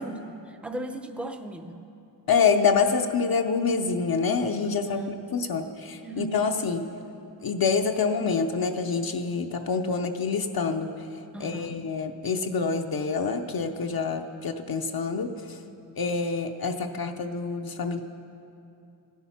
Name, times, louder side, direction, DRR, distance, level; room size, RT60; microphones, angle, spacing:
voice 1, 0.0-1.8 4.6-5.2 6.0-6.4 11.3-11.8, right 1 dB, 5° right, 6 dB, 0.6 m, -37 dB
voice 2, 2.3-5.0 5.3-6.9 7.4-11.1 11.4-15.6 16.0-18.0, left 5 dB, 55° left, 5 dB, 0.6 m, -26 dB
16.0 x 10.5 x 5.8 m, 2.7 s
wide cardioid pair, 150°, 43 cm